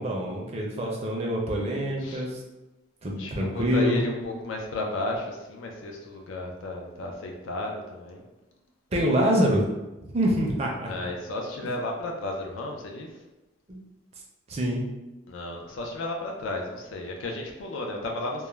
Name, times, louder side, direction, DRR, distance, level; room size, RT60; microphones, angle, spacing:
voice 1, 0.0-2.4 3.0-4.0 8.9-9.6 10.0-10.9 13.7-13.8 14.5-14.8, equal, 30° right, -1 dB, 0.4 m, -25 dB
voice 2, 3.2-8.2 10.9-13.1 15.3-18.5, left 2 dB, 90° left, 1 dB, 0.4 m, -33 dB
2.3 x 2.1 x 3.0 m, 1.0 s
head